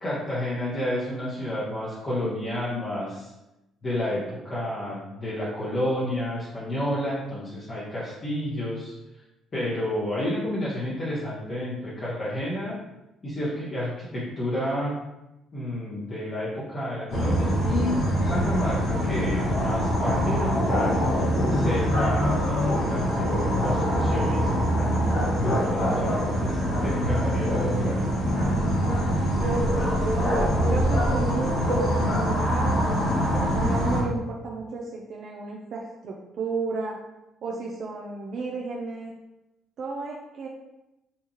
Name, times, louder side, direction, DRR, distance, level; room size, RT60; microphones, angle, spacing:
voice 1, 0.0-3.3 3.8-8.9 9.5-12.8 13.2-14.9 15.5-18.0 18.2-24.5 24.8-28.4, left 1 dB, 40° left, -8 dB, 0.8 m, -30 dB
sound 1, 17.1-34.0, equal, 60° left, 1.0 m, -24 dB
voice 2, 29.4-33.0 33.3-37.0 37.4-39.1 39.8-40.5, right 3 dB, 60° right, -2 dB, 0.3 m, -33 dB
2.8 x 2.3 x 2.8 m, 0.94 s
hypercardioid pair, 50°, 0 cm